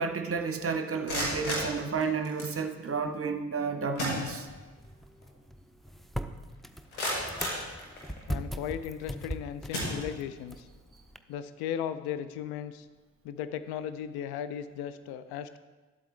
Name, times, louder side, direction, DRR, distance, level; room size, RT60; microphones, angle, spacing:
voice 1, 0.0-4.5, right 5 dB, 35° right, 6 dB, 0.9 m, -31 dB
sound 1, 0.9-2.6 3.6-3.7 4.0-4.9 5.2-5.3 5.9-6.0 6.5-8.4 9.0-9.2 9.7-10.5, left 1 dB, 85° left, 1.7 m, -35 dB
sound 2, 4.5-11.2, equal, ahead, 0.4 m, -40 dB
voice 2, 8.3-10.7 11.3-12.9 13.2-15.6, left 9 dB, 65° left, 13 dB, 0.6 m, -36 dB
11.5 x 7.9 x 3.3 m, 1.3 s
hypercardioid pair, 40°, 42 cm